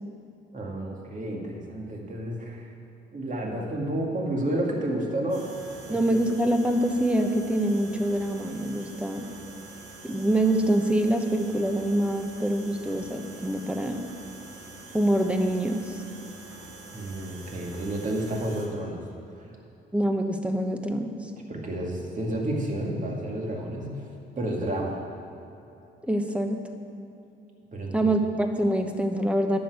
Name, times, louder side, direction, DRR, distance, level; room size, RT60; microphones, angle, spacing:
voice 1, 0.5-2.7 3.1-5.5 5.9-6.2 16.9-19.0 19.4-19.5 21.5-24.1 24.4-25.0 27.7-28.1, right 1 dB, 40° right, -1 dB, 2.2 m, -31 dB
sound 1, 5.3-18.7, right 2 dB, 90° right, 2.0 m, -45 dB
voice 2, 5.9-9.3 10.0-14.0 14.9-16.0 19.9-21.3 26.0-26.6 27.9-29.6, right 1 dB, 5° right, 5 dB, 1.0 m, -25 dB
10.0 x 6.3 x 8.2 m, 2.9 s
cardioid pair, 90°, 20 cm